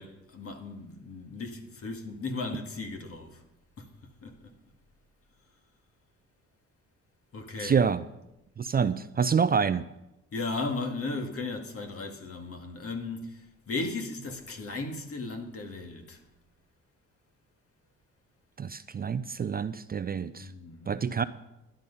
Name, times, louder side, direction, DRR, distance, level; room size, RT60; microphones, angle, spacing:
voice 1, 0.0-3.4 3.8-4.5 7.3-7.9 10.3-16.2 20.4-21.1, left 3 dB, 50° left, 2.1 m, -36 dB
voice 2, 7.6-8.0 8.6-9.8 18.6-20.5 20.9-21.2, right 6 dB, 30° right, 0.5 m, -27 dB
12.5 x 10.5 x 5.5 m
cardioid pair, 90°, 30 cm